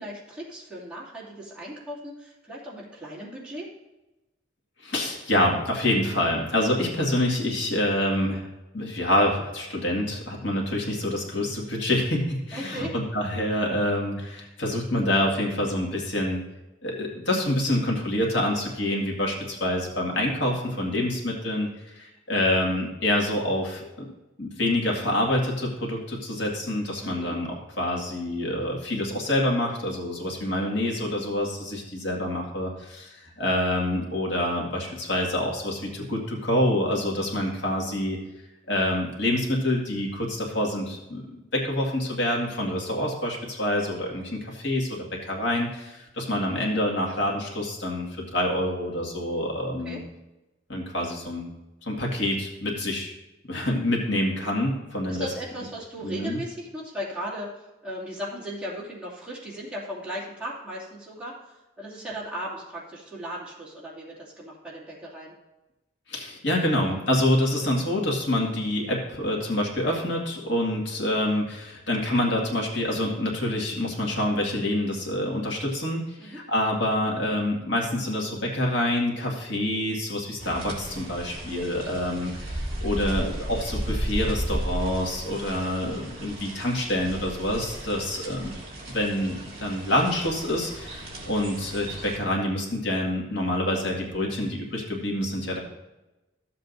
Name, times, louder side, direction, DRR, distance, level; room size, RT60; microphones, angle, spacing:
voice 1, 0.0-3.7 12.5-12.9 27.0-27.4 49.8-50.0 55.1-65.3 76.2-76.4, equal, 5° right, -8 dB, 2.6 m, -37 dB
voice 2, 4.8-8.5 8.7-16.4 16.8-24.1 24.4-38.2 38.7-50.0 50.7-51.5 51.8-53.1 53.5-55.3 56.0-56.4 66.1-88.5 88.9-95.6, left 1 dB, 75° left, -1 dB, 2.1 m, -27 dB
sound 1, 80.4-92.2, right 1 dB, 30° right, 2.8 m, -34 dB
14.0 x 7.7 x 2.7 m, 1.0 s
head